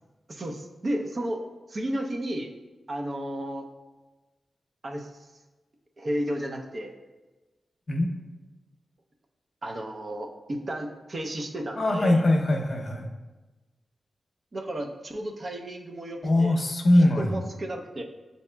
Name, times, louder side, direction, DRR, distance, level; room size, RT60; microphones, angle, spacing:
voice 1, 0.3-1.4 1.7-2.5 2.9-3.6 4.8-5.3 6.0-7.0 9.6-12.2 14.5-16.5 16.9-18.0, right 1 dB, 50° right, 3 dB, 0.5 m, -33 dB
voice 2, 11.8-13.1 16.2-17.4, left 1 dB, 55° left, 2 dB, 0.6 m, -22 dB
7.0 x 2.7 x 2.2 m, 1.2 s
cardioid pair, 55°, 0 cm